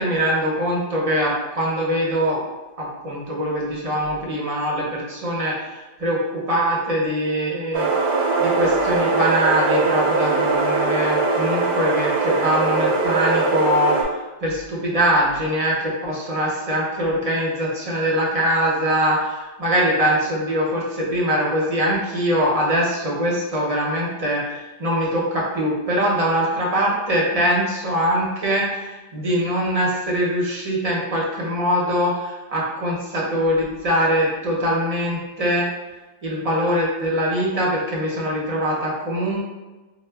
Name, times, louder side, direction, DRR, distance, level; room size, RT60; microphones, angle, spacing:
voice 1, 0.0-2.4 2.8-7.9 8.4-35.7 36.2-39.4, equal, 40° right, -4 dB, 0.6 m, -22 dB
sound 1, 7.7-14.0, right 3 dB, 80° right, 0.9 m, -21 dB
4.2 x 2.1 x 2.2 m, 1.1 s
omnidirectional pair, 1.2 m